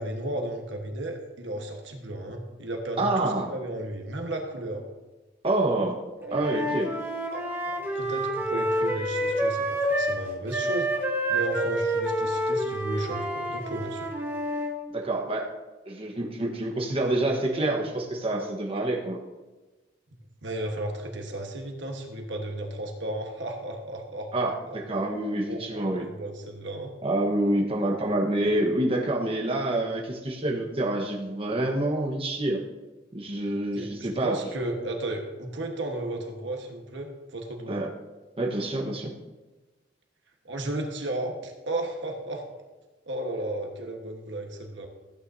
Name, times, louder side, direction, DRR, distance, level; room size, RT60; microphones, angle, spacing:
voice 1, 0.0-4.8 6.2-6.5 7.3-10.9 11.3-14.1 20.4-24.8 25.5-26.9 28.0-28.2 33.7-37.8 40.4-42.4 43.1-44.9, right 1 dB, 80° right, 3 dB, 1.4 m, -34 dB
voice 2, 3.0-3.5 5.4-6.0 6.3-6.9 14.9-15.5 15.9-19.2 24.3-26.0 27.0-32.6 33.1-34.4 37.7-37.9 38.4-39.1, right 1 dB, 30° right, 0 dB, 1.2 m, -27 dB
Wind instrument woodwind instrument, 6.3-10.2 10.5-14.7, right 1 dB, 10° right, 1.2 m, -28 dB
14.5 x 9.1 x 2.7 m, 1.2 s
head